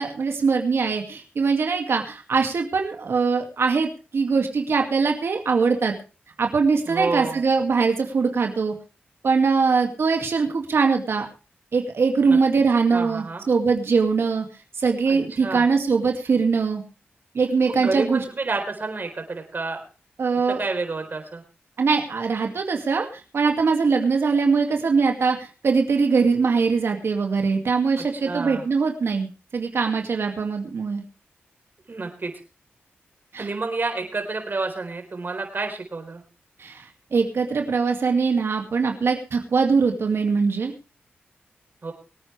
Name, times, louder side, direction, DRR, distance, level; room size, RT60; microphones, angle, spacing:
voice 1, 0.0-5.9 6.4-8.7 9.2-11.3 11.7-14.5 14.8-16.8 17.3-18.2 20.2-20.6 21.8-31.0 33.3-33.5 36.6-36.9 37.1-40.7, right 5 dB, 70° right, 3 dB, 2.2 m, -22 dB
voice 2, 6.9-7.4 12.3-12.4 12.9-13.4 15.1-15.7 17.7-19.8 20.5-21.4 28.0-28.6 31.9-32.3 33.4-36.2 41.8-41.9, right 3 dB, 50° right, 4 dB, 4.1 m, -29 dB
24.0 x 9.1 x 3.4 m, 0.33 s
cardioid pair, 50°, 4 cm